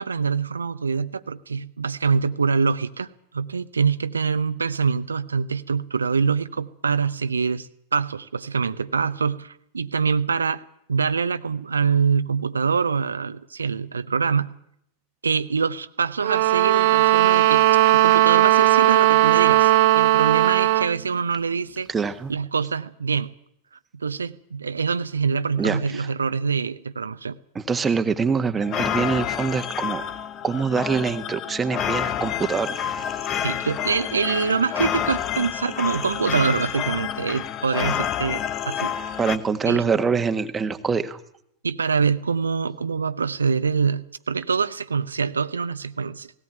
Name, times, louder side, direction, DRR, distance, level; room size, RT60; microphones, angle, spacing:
voice 1, 0.0-3.1 3.3-10.6 10.9-14.5 15.2-17.7 17.9-21.9 22.3-23.3 23.9-27.4 33.4-39.2 39.7-39.8 41.6-46.3, right 5 dB, 75° right, 11 dB, 0.7 m, -25 dB
sound 1, 16.2-20.9, right 15 dB, 50° right, 1.2 m, -17 dB
voice 2, 21.9-22.3 25.6-26.1 27.5-30.0 30.4-32.9 39.2-41.2, right 5 dB, 15° right, 8 dB, 1.5 m, -24 dB
sound 2, 28.6-39.4, left 9 dB, 30° left, 1.2 m, -28 dB
18.5 x 17.5 x 9.1 m, 0.74 s
figure-of-eight pair, 90°, 0 cm